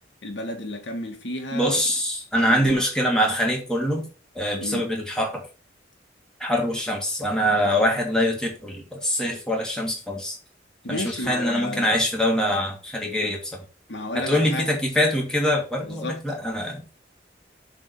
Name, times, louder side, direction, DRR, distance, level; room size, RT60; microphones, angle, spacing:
voice 1, 0.2-1.8 2.4-2.8 4.6-4.8 10.8-11.9 13.9-14.7 15.8-16.2, left 1 dB, 85° left, 1.8 m, -32 dB
voice 2, 1.5-4.1 4.3-5.4 6.4-10.4 10.9-13.6 14.1-16.8, equal, 5° left, 1.9 m, -24 dB
7.2 x 3.8 x 5.4 m
head